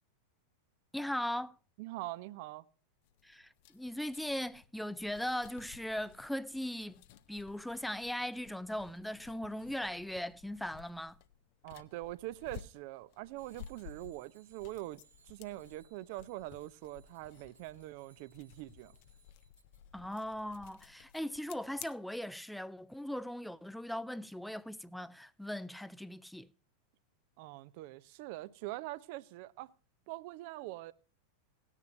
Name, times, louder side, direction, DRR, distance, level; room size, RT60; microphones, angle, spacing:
voice 1, 0.9-1.6 3.2-7.0 7.3-11.2 19.9-26.5, left 1 dB, ahead, 0.4 m, -39 dB
voice 2, 1.8-2.7 11.6-18.9 27.4-29.7 30.1-30.9, right 17 dB, 45° right, 0.5 m, -44 dB
sound 1, 3.0-21.9, left 10 dB, 45° left, 0.6 m, -56 dB
Bicycle bell, 13.4-19.8, right 5 dB, 85° right, 1.6 m, -68 dB
17.5 x 9.8 x 2.6 m
figure-of-eight pair, 90°, 0 cm